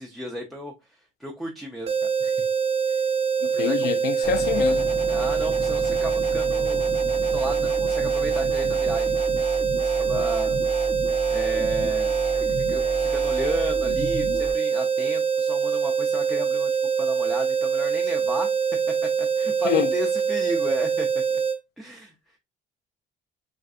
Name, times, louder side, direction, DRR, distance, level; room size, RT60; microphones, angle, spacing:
voice 1, 0.0-2.4 2.9-3.1 3.5-3.9 4.2-4.3 5.1-6.9 7.2-9.3 9.8-10.6 11.3-16.7 17.0-18.5 19.2-21.1 21.8-22.1, equal, ahead, 0.4 m, -34 dB
sound 1, 1.9-21.6, right 6 dB, 35° right, 0.7 m, -24 dB
voice 2, 3.4-4.9 19.6-19.9, left 9 dB, 75° left, 0.4 m, -25 dB
sound 2, 4.2-14.5, equal, 45° left, 1.1 m, -33 dB
3.3 x 2.5 x 2.3 m
cardioid pair, 110°, 17 cm